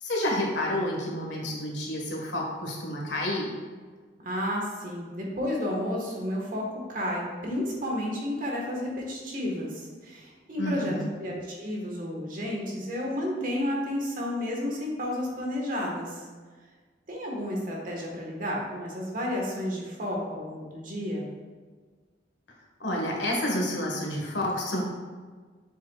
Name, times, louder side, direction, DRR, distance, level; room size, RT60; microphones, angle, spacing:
voice 1, 0.0-3.5 10.6-11.1 22.8-24.8, left 1 dB, 80° left, -1 dB, 1.7 m, -29 dB
voice 2, 4.2-6.6 6.9-16.3 17.1-21.3, left 1 dB, 50° right, -2 dB, 1.6 m, -31 dB
7.3 x 7.1 x 2.5 m, 1.5 s
head